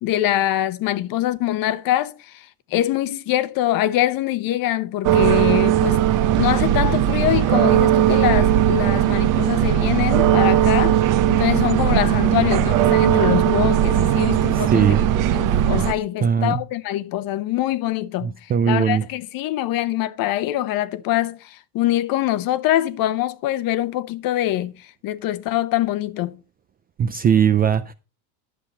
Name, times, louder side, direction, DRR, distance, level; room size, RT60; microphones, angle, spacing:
voice 1, 0.0-6.0 6.3-11.0 11.3-15.1 15.3-26.4, left 14 dB, 45° left, 1.0 m, -24 dB
sound 1, 5.0-15.9, right 11 dB, 40° right, 0.9 m, -18 dB
voice 2, 14.7-15.0 16.2-16.6 18.2-19.0 27.0-27.9, right 8 dB, 20° right, 0.4 m, -19 dB
11.0 x 7.0 x 4.4 m
supercardioid pair, 115°, 47 cm